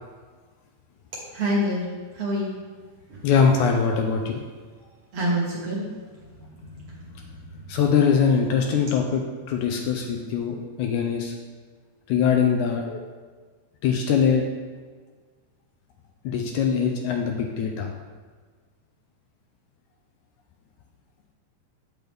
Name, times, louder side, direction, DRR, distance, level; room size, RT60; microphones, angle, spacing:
voice 1, 1.3-1.9 2.1-2.6 3.1-3.2 5.1-5.8 6.4-6.7 7.1-7.6, equal, 60° right, -5 dB, 1.8 m, -27 dB
voice 2, 3.2-4.4 7.7-9.2 9.5-11.3 12.1-13.0 13.8-14.4 16.3-17.9, left 6 dB, 80° left, 2 dB, 1.9 m, -22 dB
7.9 x 6.1 x 3.4 m, 1.5 s
omnidirectional pair, 3.8 m